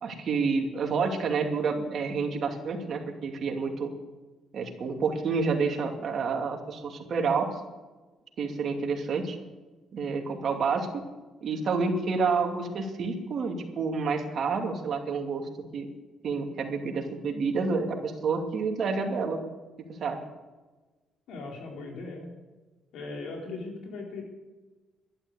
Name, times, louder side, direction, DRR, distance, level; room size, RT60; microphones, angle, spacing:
voice 1, 0.0-3.9 4.5-7.5 8.4-9.4 9.9-10.9 11.4-15.9 16.2-19.4 20.0-20.2, right 4 dB, 60° right, 2 dB, 2.6 m, -29 dB
voice 2, 21.3-22.3 22.9-24.2, left 3 dB, 85° left, 0 dB, 4.4 m, -38 dB
12.0 x 11.0 x 8.3 m, 1.2 s
cardioid pair, 90°, 0 cm